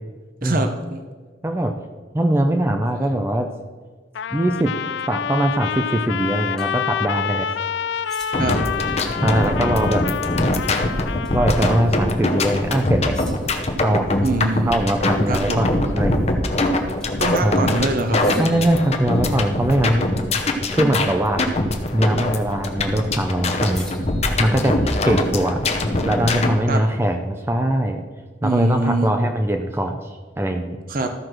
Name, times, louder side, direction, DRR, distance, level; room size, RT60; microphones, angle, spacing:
voice 1, 0.4-1.0 8.4-8.6 14.2-14.8 15.3-15.7 17.2-18.2 26.7-26.8 28.4-29.1 30.9-31.1, right 2 dB, 50° right, 6 dB, 0.7 m, -23 dB
voice 2, 1.4-1.7 2.1-3.5 4.3-4.7 5.1-7.5 9.2-10.0 11.3-13.1 13.8-14.2 14.7-16.3 17.4-17.7 18.4-20.1 20.7-21.4 21.9-23.9 24.4-25.6 26.0-28.0 28.4-30.8, right 1 dB, 15° right, 5 dB, 0.5 m, -21 dB
Trumpet, 4.1-12.0, left 7 dB, 70° left, 0.3 m, -27 dB
sound 1, 6.6-6.7 8.0-8.7 11.2-11.5 11.9-12.0 13.1-13.7 17.0-17.5 18.2-19.6 21.9-22.3 23.7-25.1, left 2 dB, 5° left, 1.4 m, -44 dB
sound 2, 8.3-26.5, left 2 dB, 35° left, 0.8 m, -23 dB
13.5 x 4.7 x 6.1 m, 1.4 s
head